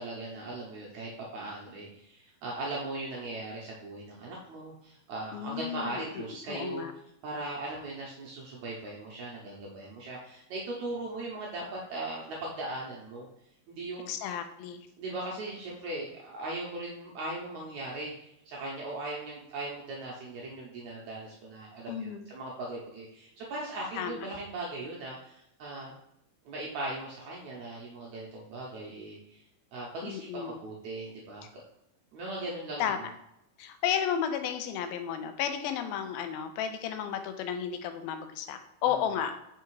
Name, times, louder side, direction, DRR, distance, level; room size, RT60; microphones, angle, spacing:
voice 1, 0.0-6.9 7.2-13.3 13.7-14.1 15.0-25.9 26.5-29.4 29.7-31.6 32.1-32.9 38.9-39.0, right 2 dB, 75° right, -3 dB, 1.7 m, -39 dB
voice 2, 5.3-6.0 6.5-6.9 14.1-14.9 21.9-22.3 24.0-24.3 30.0-30.6 32.8-33.0 33.6-39.3, left 9 dB, 85° left, 8 dB, 2.4 m, -33 dB
5.7 x 3.6 x 4.6 m, 0.82 s
omnidirectional pair, 4.2 m